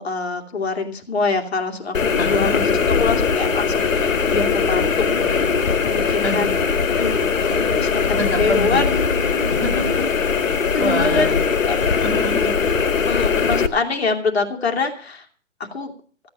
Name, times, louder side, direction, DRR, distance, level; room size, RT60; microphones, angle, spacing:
voice 1, 0.0-2.6 2.9-5.3 5.8-6.5 7.0-9.0 10.7-11.3 11.6-11.8 13.0-15.3 15.7-15.9, left 4 dB, 55° left, 3 dB, 2.6 m, -25 dB
sound 1, 1.9-13.7, left 5 dB, 85° left, 1.5 m, -20 dB
voice 2, 2.2-2.6 6.2-6.5 8.2-8.8 9.4-10.1 10.4-11.4 11.9-12.5, left 1 dB, 10° left, -6 dB, 1.3 m, -26 dB
sound 2, 3.4-10.1, left 2 dB, 30° left, 5.1 m, -35 dB
15.0 x 8.5 x 7.2 m, 0.42 s
hypercardioid pair, 175°, 38 cm